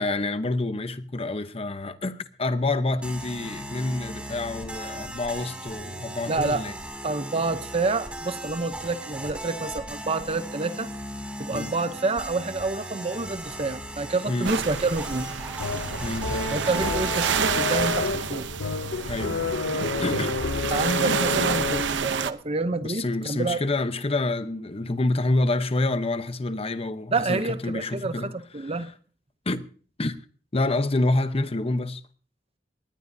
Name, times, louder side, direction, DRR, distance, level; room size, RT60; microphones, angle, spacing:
voice 1, 0.0-6.7 11.5-11.7 14.3-14.5 16.0-16.6 19.1-19.6 20.0-20.3 22.8-28.3 29.5-29.7 30.0-30.2 30.5-32.0, left 2 dB, 35° left, 0.9 m, -27 dB
sound 1, 3.0-17.8, right 1 dB, 5° right, 2.6 m, -37 dB
voice 2, 6.3-6.6 7.0-10.9 11.4-15.3 16.5-18.5 20.7-23.6 27.1-28.9, right 3 dB, 35° right, 0.7 m, -28 dB
sound 2, 14.4-22.3, right 6 dB, 75° right, 0.7 m, -29 dB
sound 3, 15.6-22.1, left 4 dB, 80° left, 0.6 m, -30 dB
20.0 x 18.0 x 2.7 m
head